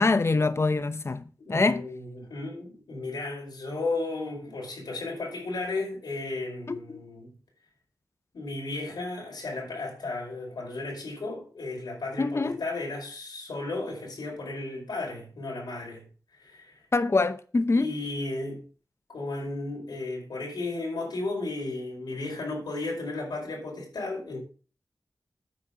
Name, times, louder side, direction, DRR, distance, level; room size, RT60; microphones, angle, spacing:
voice 1, 0.0-1.2 1.5-1.8 6.7-7.0 12.2-12.6 16.9-17.9, left 3 dB, 40° left, 0.7 m, -24 dB
voice 2, 1.4-7.3 8.3-16.1 16.3-16.8 17.7-18.6 19.1-24.4, left 2 dB, 85° left, 5.1 m, -34 dB
9.5 x 5.9 x 5.9 m
wide cardioid pair, 65°, 7 cm